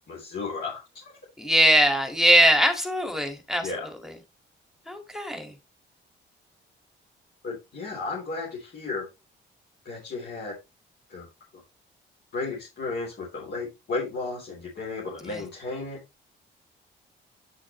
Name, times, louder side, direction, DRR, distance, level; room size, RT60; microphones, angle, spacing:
voice 1, 0.1-0.8 3.6-3.9 7.4-9.1 9.9-10.6 11.1-11.3 12.3-16.0, left 3 dB, 55° left, 3.6 m, -33 dB
voice 2, 1.4-4.1 4.9-5.5 15.2-15.4, right 1 dB, ahead, 2.0 m, -22 dB
9.0 x 6.2 x 3.1 m
cardioid pair, 90°, 20 cm